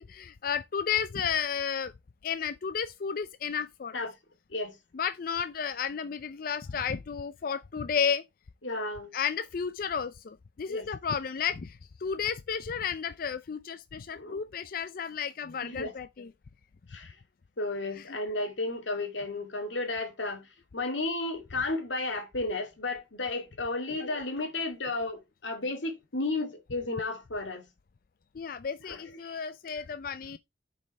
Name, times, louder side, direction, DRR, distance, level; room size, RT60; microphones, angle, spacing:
voice 1, 0.0-1.9 2.2-4.0 4.9-8.2 9.1-16.3 28.3-30.4, left 7 dB, 50° left, 0.4 m, -32 dB
voice 2, 8.6-9.1 10.7-10.9 14.1-14.4 15.6-16.3 16.9-17.2 17.6-27.7 28.8-29.4 29.8-29.9, left 2 dB, 90° left, 2.1 m, -33 dB
9.9 x 5.3 x 4.2 m
head